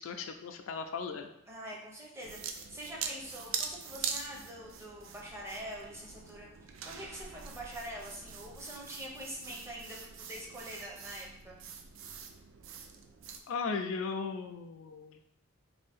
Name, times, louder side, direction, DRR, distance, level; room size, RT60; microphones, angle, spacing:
voice 1, 0.0-1.3 13.5-15.3, left 5 dB, 75° left, 6 dB, 0.3 m, -37 dB
voice 2, 1.5-11.6, equal, 15° right, -3 dB, 0.5 m, -45 dB
sound 1, 2.2-13.4, right 6 dB, 65° right, 0.3 m, -43 dB
2.7 x 2.5 x 3.4 m, 0.80 s
head